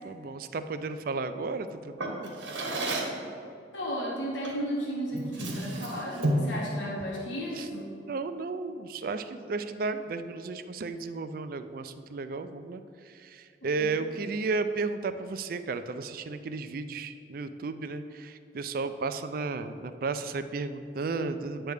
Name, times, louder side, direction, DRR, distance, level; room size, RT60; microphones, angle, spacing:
voice 1, 0.1-2.3 7.5-7.7 8.1-21.7, right 4 dB, 50° right, 10 dB, 0.4 m, -34 dB
Drawer open or close, 2.0-3.2 4.4-4.7 5.1-6.6, right 1 dB, 90° right, 1.3 m, -31 dB
voice 2, 3.7-7.9 13.6-14.1, equal, 80° left, -3 dB, 1.2 m, -34 dB
9.5 x 3.3 x 6.4 m, 2.4 s
head